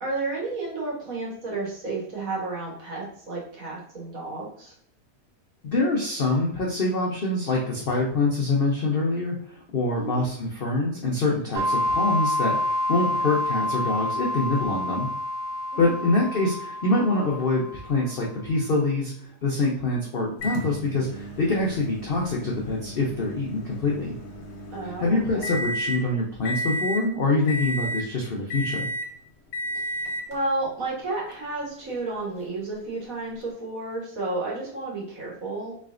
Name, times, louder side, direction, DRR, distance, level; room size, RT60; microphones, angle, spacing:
voice 1, 0.0-4.7 9.9-10.3 15.7-16.0 24.7-25.6 29.7-35.7, right 2 dB, 55° right, -4 dB, 1.6 m, -32 dB
voice 2, 5.6-15.1 15.8-24.1 25.0-28.9, left 2 dB, 65° left, -2 dB, 0.5 m, -25 dB
sound 1, 11.6-18.1, left 1 dB, 80° right, 1.2 m, -28 dB
Microwave oven, 20.4-26.0 26.4-27.1 27.5-28.1 28.5-29.1 29.5-30.3 31.3-31.4 33.4-33.5, equal, 50° left, 0.9 m, -33 dB
4.1 x 3.2 x 2.4 m, 0.65 s
omnidirectional pair, 1.8 m